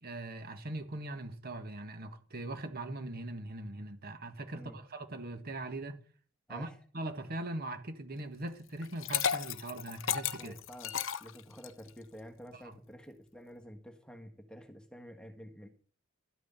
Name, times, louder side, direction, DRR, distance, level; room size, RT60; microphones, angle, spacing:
voice 1, 0.0-6.0 6.5-6.7 6.9-10.6 12.5-12.7, right 2 dB, 50° right, 1.6 m, -41 dB
voice 2, 6.5-6.8 10.4-15.7, equal, 5° left, 1.5 m, -50 dB
Liquid, 8.8-11.9, left 8 dB, 70° left, 0.8 m, -34 dB
13.0 x 6.3 x 8.9 m
head